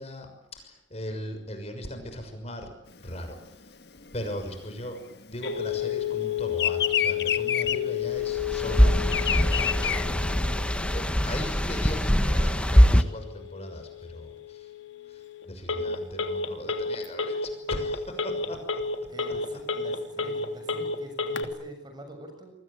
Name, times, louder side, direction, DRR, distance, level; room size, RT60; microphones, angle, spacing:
voice 1, 0.0-2.7 3.0-3.8 4.1-10.4 10.9-14.7 15.1-18.8 19.3-19.4, equal, 35° left, 6 dB, 6.3 m, -39 dB
Bird vocalization bird call bird song, 3.0-5.9 6.1-10.9, left 9 dB, 60° left, 1.5 m, -29 dB
Telephone, 5.4-21.4, left 6 dB, 80° left, 3.0 m, -32 dB
sound 1, 8.3-13.0, equal, 5° left, 1.2 m, -22 dB
voice 2, 19.1-22.5, right 1 dB, 25° right, 6 dB, 6.8 m, -46 dB
29.0 x 22.5 x 9.1 m, 0.73 s
head